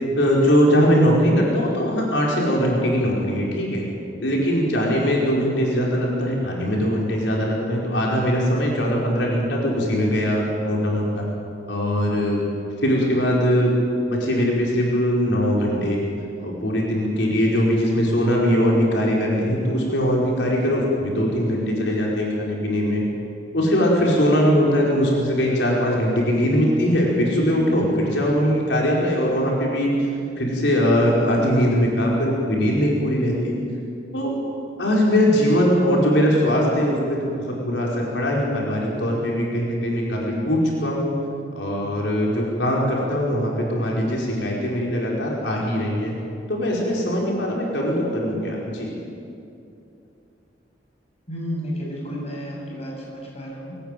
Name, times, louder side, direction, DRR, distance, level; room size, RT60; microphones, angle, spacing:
voice 1, 0.2-3.9 4.2-11.2 11.7-12.4 12.8-13.7 14.1-16.0 16.4-23.0 23.5-30.1 30.4-33.5 34.1-34.3 34.8-41.1 41.6-46.1 46.5-48.9, equal, 90° left, -2 dB, 4.9 m, -21 dB
voice 2, 51.3-53.8, equal, 35° left, -2 dB, 7.3 m, -32 dB
22.5 x 18.5 x 9.2 m, 2.7 s
head